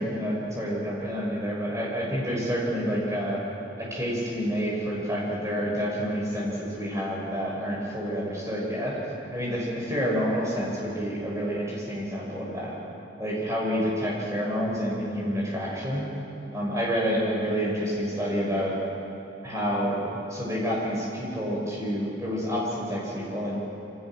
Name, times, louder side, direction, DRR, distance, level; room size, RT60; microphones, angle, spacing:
voice 1, 0.0-3.4 3.8-9.0 9.3-12.8 13.2-16.1 16.5-18.7 19.4-20.0 20.3-23.6, equal, 15° right, -4 dB, 7.1 m, -28 dB
28.5 x 26.0 x 6.3 m, 2.8 s
head